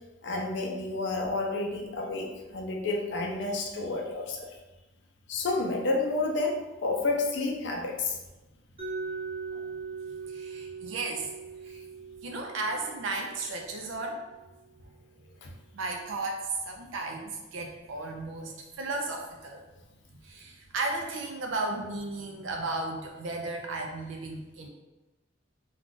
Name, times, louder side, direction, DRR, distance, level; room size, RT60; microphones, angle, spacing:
voice 1, 0.2-4.5 5.3-8.2 15.4-15.5, left 3 dB, 65° left, 2 dB, 0.5 m, -30 dB
Mallet percussion, 8.8-14.6, right 4 dB, 30° right, 0.7 m, -40 dB
voice 2, 10.3-11.3 11.6-11.8 12.2-14.2 15.7-19.6 20.2-24.7, right 2 dB, 85° right, 2 dB, 0.4 m, -34 dB
2.4 x 2.3 x 3.8 m, 1.1 s
head